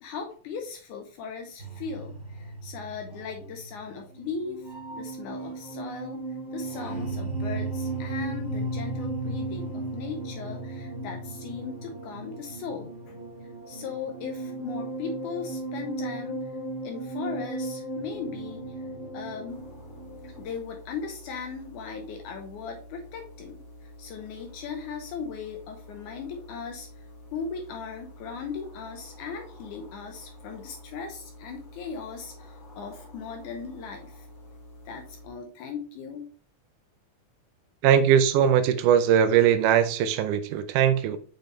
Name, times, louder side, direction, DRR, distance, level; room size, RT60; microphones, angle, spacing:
voice 1, 0.0-6.2 6.5-13.2 13.7-16.5 16.8-18.7 19.1-19.6 20.2-27.0 27.3-34.3 34.9-36.2, left 5 dB, 75° left, 2.2 m, -38 dB
sound 1, 1.6-20.4, right 2 dB, 25° right, 2.2 m, -35 dB
sound 2, 19.5-35.3, left 1 dB, 25° left, 1.8 m, -48 dB
voice 2, 37.8-41.2, right 9 dB, 80° right, 2.1 m, -20 dB
7.2 x 5.2 x 3.1 m
omnidirectional pair, 3.6 m